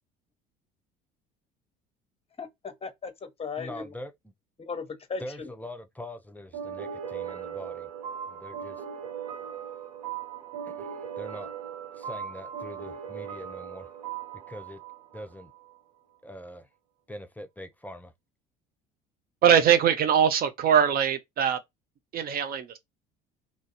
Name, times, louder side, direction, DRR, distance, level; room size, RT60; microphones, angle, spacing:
voice 1, 2.4-3.9 4.6-5.5, left 5 dB, 30° left, 1.0 m, -37 dB
voice 2, 3.6-4.1 5.2-7.9 8.3-8.8 10.6-11.5 11.9-13.9 14.5-14.8 15.1-15.5 16.2-16.7 17.1-18.1, left 1 dB, 10° left, 0.7 m, -43 dB
sound 1, 6.5-15.8, right 8 dB, 75° right, 0.9 m, -38 dB
voice 3, 19.4-21.6 22.1-22.8, right 8 dB, 50° right, 0.6 m, -22 dB
3.0 x 2.6 x 4.0 m
hypercardioid pair, 70°, 20 cm